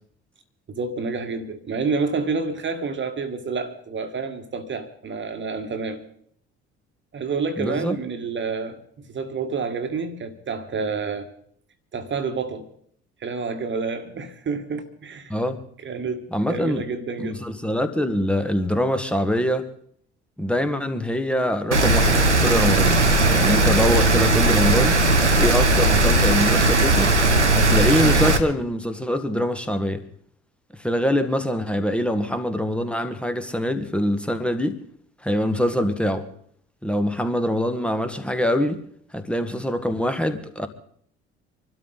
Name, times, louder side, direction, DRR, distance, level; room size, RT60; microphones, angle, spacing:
voice 1, 0.7-6.0 7.1-11.3 11.9-12.7 13.2-15.3 15.8-17.5, right 4 dB, 35° right, 1.7 m, -29 dB
voice 2, 7.6-7.9 15.3-15.6 16.3-16.8 17.2-19.7 20.4-22.9 23.3-25.0 25.4-27.1 27.5-30.0 30.8-34.8 35.2-36.3 36.8-38.8 39.1-40.7, equal, 5° left, 1.5 m, -24 dB
Rain, 21.7-28.4, right 2 dB, 90° right, 0.9 m, -18 dB
25.5 x 12.5 x 4.0 m
figure-of-eight pair, 55°, 34 cm